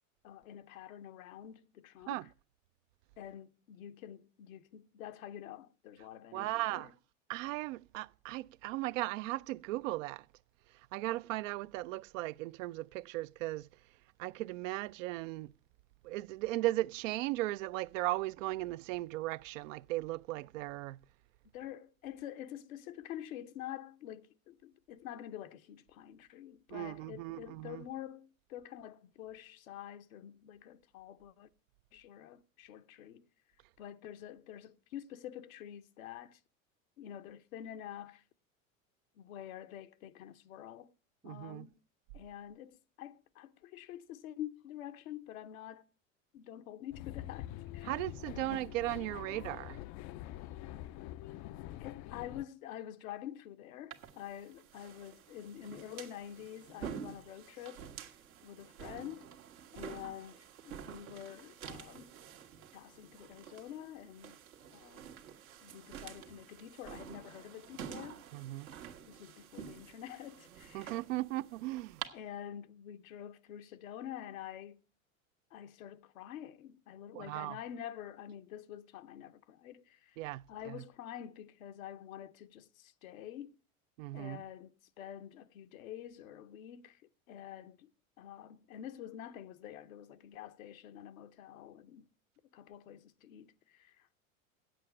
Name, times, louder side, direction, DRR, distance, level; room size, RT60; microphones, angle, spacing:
voice 1, 0.2-2.3 3.2-6.9 21.5-31.5 31.9-33.3 33.8-36.4 37.0-38.2 39.2-40.9 41.2-41.8 42.1-45.8 46.3-48.0 48.3-48.5 51.8-57.9 58.4-59.3 59.7-62.2 62.7-64.4 64.7-65.1 65.6-68.2 69.0-70.9 72.1-74.8 75.5-80.2 80.5-83.6 84.1-87.0 87.3-87.9 88.2-92.1 92.5-94.2, left 11 dB, 75° left, 0.9 m, -47 dB
voice 2, 6.3-6.9 7.3-10.2 10.9-13.6 14.2-15.5 16.0-21.0 26.7-27.8 41.2-41.7 47.9-49.8 68.3-68.7 70.7-72.0 77.1-77.6 80.2-80.8 84.0-84.4, right 18 dB, 65° right, 0.5 m, -37 dB
sound 1, 46.9-52.4, left 14 dB, 45° left, 0.4 m, -45 dB
sound 2, 53.9-72.1, right 8 dB, 85° right, 1.5 m, -49 dB
9.0 x 7.8 x 7.6 m
hypercardioid pair, 85°, 41 cm